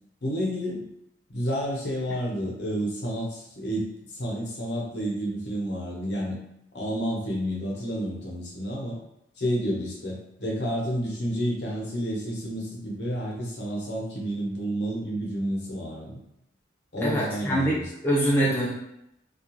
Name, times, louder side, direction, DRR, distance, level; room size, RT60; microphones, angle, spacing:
voice 1, 0.2-0.9 1.3-3.9 4.1-6.4 6.7-9.0 9.4-16.2 16.9-17.8, equal, 65° left, -3 dB, 0.8 m, -30 dB
voice 2, 17.0-17.8 18.0-18.7, right 1 dB, 10° left, -7 dB, 0.4 m, -23 dB
2.4 x 2.3 x 3.0 m, 0.79 s
head